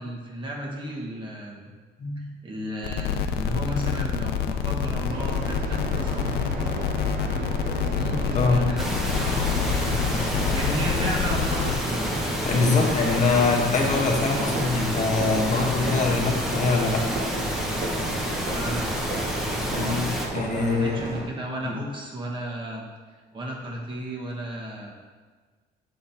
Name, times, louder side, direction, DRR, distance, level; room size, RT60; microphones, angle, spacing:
voice 1, 0.0-1.7 2.4-6.7 7.2-7.5 7.9-8.9 9.2-10.2 10.5-12.1 12.7-12.9 14.3-14.7 18.5-19.0 19.7-20.0 20.5-22.9 23.3-24.9, right 1 dB, 30° right, -2 dB, 1.5 m, -34 dB
voice 2, 2.0-2.3 8.3-8.6 12.4-17.0 19.7-20.1 20.3-21.0 21.6-21.7, left 3 dB, 45° left, 0 dB, 1.2 m, -23 dB
sound 1, 2.8-11.8, left 7 dB, 70° left, 0.5 m, -27 dB
sound 2, 5.1-21.2, right 3 dB, 60° right, 1.1 m, -34 dB
sound 3, 8.8-20.3, equal, ahead, 1.0 m, -29 dB
7.6 x 3.8 x 4.3 m, 1.5 s
cardioid pair, 110°, 17 cm